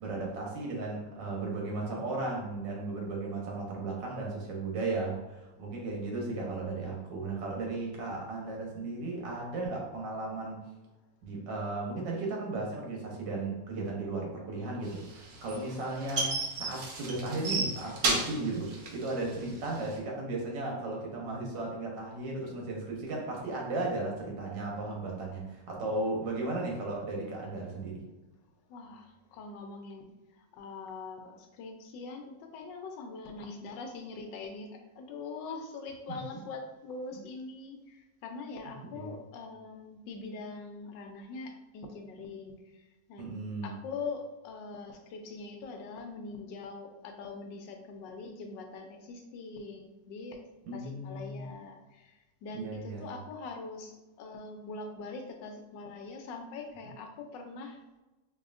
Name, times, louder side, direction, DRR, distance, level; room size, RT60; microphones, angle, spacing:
voice 1, 0.0-10.6 11.2-28.0 36.1-36.2 38.9-39.2 43.2-43.8 50.7-51.5 52.5-53.1, right 2 dB, 85° right, -2 dB, 1.7 m, -35 dB
sound 1, 14.9-19.9, right 3 dB, 55° right, 1.0 m, -32 dB
voice 2, 28.7-30.1 30.3-50.4 50.7-58.0, left 3 dB, 90° left, 4 dB, 1.3 m, -43 dB
4.7 x 2.7 x 2.5 m, 1.1 s
omnidirectional pair, 1.9 m